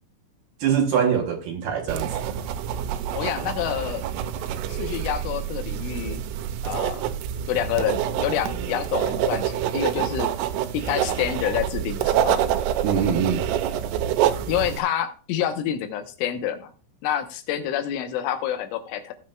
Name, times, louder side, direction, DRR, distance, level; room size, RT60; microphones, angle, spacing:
voice 1, 0.6-2.4 12.8-13.4, right 7 dB, 70° right, 2.5 m, -23 dB
sound 1, 1.9-14.8, right 10 dB, 90° right, 3.3 m, -27 dB
voice 2, 3.1-4.0 4.7-6.3 6.6-7.0 7.5-10.3 10.7-12.4 14.5-16.7 17.0-19.1, left 10 dB, 80° left, 3.4 m, -27 dB
18.0 x 7.6 x 2.3 m
omnidirectional pair, 5.6 m